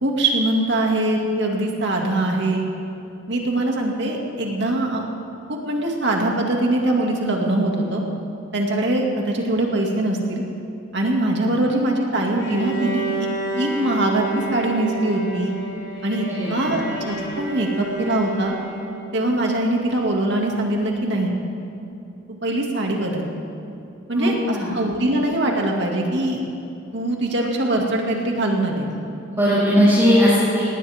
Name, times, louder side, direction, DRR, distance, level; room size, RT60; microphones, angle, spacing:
voice 1, 0.0-2.6 3.3-5.0 5.5-8.0 8.5-10.4 10.9-13.3 13.6-15.5 16.0-18.6 19.1-21.3 22.3-23.3 24.1-26.4 26.9-28.9, right 1 dB, 60° right, 0 dB, 2.3 m, -22 dB
Bowed string instrument, 12.4-19.1, right 3 dB, 65° left, 4.1 m, -30 dB
voice 2, 16.3-16.9 24.1-24.8 29.3-30.7, equal, 15° right, -13 dB, 3.9 m, -18 dB
19.5 x 18.0 x 3.6 m, 2.7 s
head